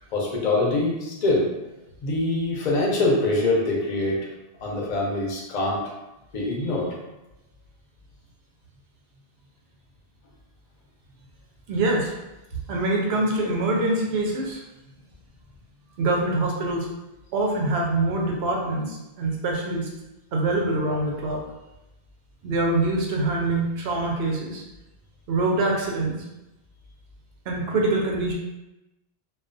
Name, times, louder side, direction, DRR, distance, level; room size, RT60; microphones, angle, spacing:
voice 1, 0.1-1.5 2.0-4.2 4.6-5.8 6.3-6.9, left 2 dB, 50° left, -3 dB, 0.6 m, -24 dB
voice 2, 11.7-12.1 12.7-14.6 16.0-16.9 17.3-19.9 20.3-21.4 22.4-24.6 25.3-26.1 27.5-28.3, right 2 dB, 85° right, -1 dB, 0.8 m, -24 dB
2.3 x 2.3 x 2.5 m, 0.97 s
omnidirectional pair, 1.1 m